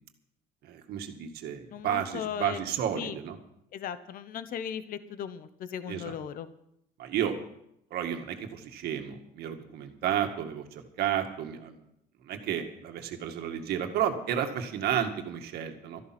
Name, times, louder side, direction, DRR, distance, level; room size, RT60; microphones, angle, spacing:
voice 1, 0.6-3.4 5.9-6.1 7.0-7.4 7.9-11.8 12.2-16.0, right 9 dB, 65° right, 5 dB, 2.0 m, -32 dB
voice 2, 1.7-2.6 3.0-3.2 3.7-6.5, left 9 dB, 55° left, 13 dB, 1.0 m, -37 dB
13.5 x 11.5 x 6.0 m, 0.77 s
cardioid pair, 100°, 17 cm